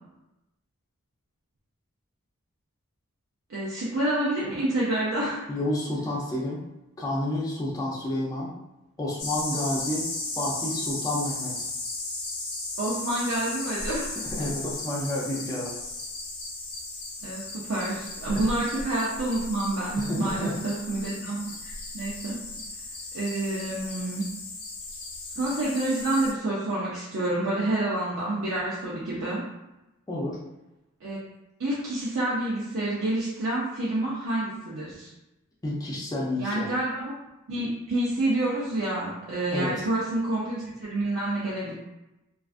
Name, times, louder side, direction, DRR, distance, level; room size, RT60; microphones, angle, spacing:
voice 1, 3.5-5.4 12.8-14.2 17.2-22.4 23.1-24.2 25.4-29.4 31.0-31.2 31.6-35.1 36.4-37.1 37.5-41.7, right 1 dB, 65° right, -7 dB, 0.5 m, -28 dB
voice 2, 5.5-6.6 7.0-8.5 9.0-10.1 10.4-11.7 14.3-15.7 20.0-20.5 30.1-30.4 35.6-36.7 39.5-39.8, left 1 dB, 15° left, -5 dB, 0.4 m, -30 dB
sound 1, 9.2-26.3, left 2 dB, 75° left, 0.6 m, -36 dB
2.4 x 2.3 x 2.4 m, 0.95 s
head